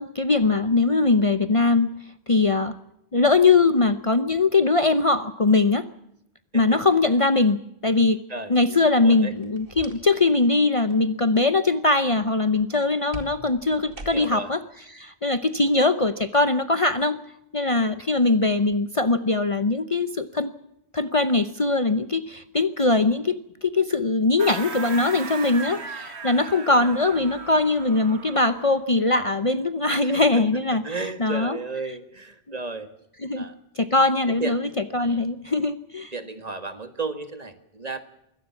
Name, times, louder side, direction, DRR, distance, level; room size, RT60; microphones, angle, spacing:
voice 1, 0.0-1.9 2.3-2.7 3.1-5.9 6.5-8.2 8.5-14.6 14.9-17.2 17.5-20.5 20.9-31.6 33.2-33.5 33.8-34.6 34.9-36.1, left 3 dB, 35° left, 11 dB, 0.9 m, -21 dB
voice 2, 8.3-9.3 14.1-14.5 26.7-26.9 30.0-32.9 33.4-33.5 34.3-34.6 35.0-35.3 36.1-38.0, right 3 dB, 40° right, 9 dB, 1.9 m, -34 dB
sound 1, 9.4-10.4 10.7-11.0 13.1-14.5, right 1 dB, 60° right, 2.4 m, -42 dB
sound 2, 24.4-28.8, right 4 dB, 85° right, 1.9 m, -37 dB
23.0 x 17.5 x 7.2 m, 0.77 s
omnidirectional pair, 1.1 m